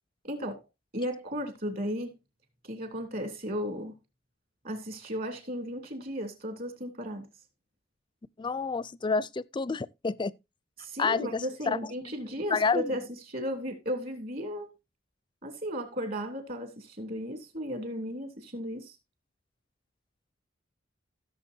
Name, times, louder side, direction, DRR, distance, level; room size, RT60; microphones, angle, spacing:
voice 1, 0.2-0.6 0.9-2.1 2.7-3.9 4.6-7.3 10.8-14.7 15.4-18.9, equal, 50° right, 3.0 m, -35 dB
voice 2, 8.4-10.3 11.0-11.8 12.5-13.0, left 4 dB, 25° left, 0.4 m, -29 dB
16.5 x 7.0 x 2.7 m
head